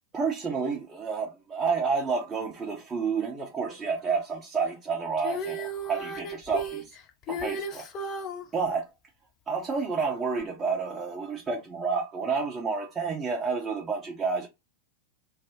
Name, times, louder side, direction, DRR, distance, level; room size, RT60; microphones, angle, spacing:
voice 1, 0.1-7.0 7.3-7.8 8.5-8.9 9.5-14.5, right 5 dB, 20° right, 0.6 m, -30 dB
Female singing, 5.2-8.4 10.4-10.5, right 1 dB, 35° left, 0.5 m, -34 dB
2.5 x 2.0 x 3.4 m
figure-of-eight pair, 90°, 0 cm